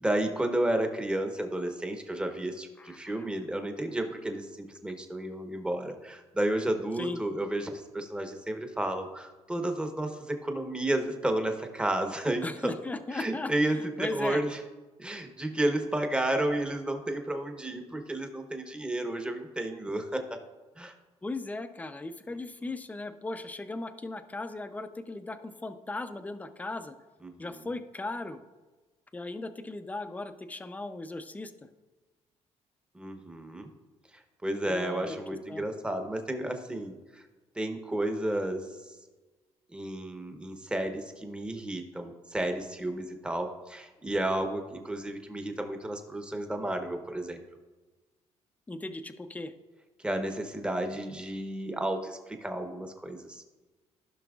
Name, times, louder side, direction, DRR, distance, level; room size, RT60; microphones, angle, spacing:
voice 1, 0.0-12.7 13.1-14.6 15.0-20.2 20.8-20.9 27.2-27.7 32.9-33.7 34.4-37.2 37.5-39.0 39.7-47.4 50.0-53.4, right 1 dB, 10° right, 5 dB, 0.9 m, -32 dB
voice 2, 2.8-3.3 7.0-7.2 12.4-14.4 21.2-27.0 27.4-28.4 29.1-31.7 34.6-35.2 35.5-35.6 48.7-49.5, left 2 dB, 15° left, 9 dB, 0.5 m, -37 dB
15.0 x 5.9 x 2.4 m, 1.2 s
cardioid pair, 115°, 12 cm